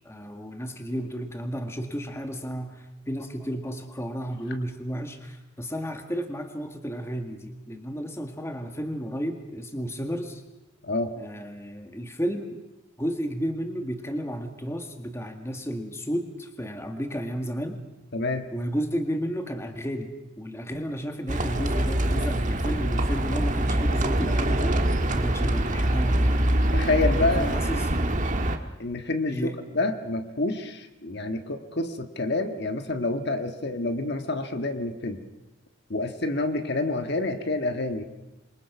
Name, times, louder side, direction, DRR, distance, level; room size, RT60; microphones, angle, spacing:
voice 1, 0.1-10.4 11.2-12.6 13.0-17.8 18.5-26.5 27.1-27.9 29.3-29.6, equal, 15° left, 5 dB, 1.9 m, -33 dB
voice 2, 18.1-18.4 26.7-27.5 28.8-29.5 29.7-35.2 35.9-38.0, left 2 dB, 55° left, 7 dB, 1.7 m, -28 dB
Livestock farm animals working animals, 21.3-28.6, right 1 dB, 40° right, 1.7 m, -24 dB
28.0 x 23.5 x 6.1 m, 0.99 s
head